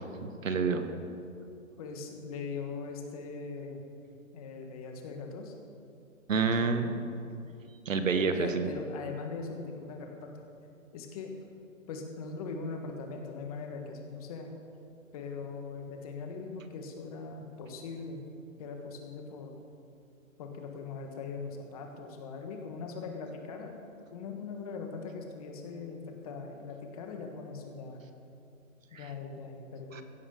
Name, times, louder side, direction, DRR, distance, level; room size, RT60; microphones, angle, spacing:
voice 1, 0.2-0.9 6.3-6.9 7.8-8.7 29.9-30.0, right 5 dB, 70° right, 8 dB, 1.6 m, -28 dB
voice 2, 1.8-3.8 4.3-5.5 6.4-7.0 8.2-10.3 10.9-11.3 11.9-14.5 15.1-18.3 18.6-19.6 20.4-23.8 24.1-28.0 28.9-30.0, left 4 dB, 25° left, 3 dB, 1.6 m, -40 dB
16.5 x 14.5 x 3.9 m, 2.5 s
hypercardioid pair, 160°, 41 cm